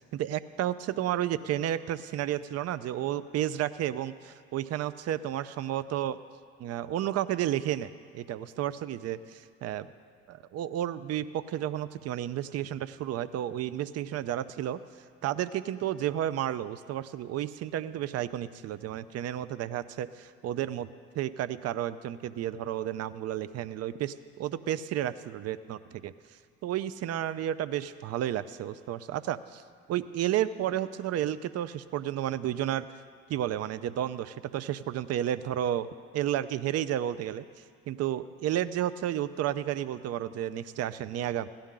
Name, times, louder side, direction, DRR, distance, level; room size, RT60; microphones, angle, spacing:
voice 1, 0.0-6.2 6.6-7.9 8.1-9.9 10.3-14.8 15.2-20.9 21.2-26.1 26.6-29.6 29.9-32.9 33.3-35.9 36.1-37.4 37.9-41.5, right 11 dB, 55° right, 15 dB, 0.5 m, -32 dB
16.5 x 11.5 x 3.8 m, 2.1 s
hypercardioid pair, 65°, 31 cm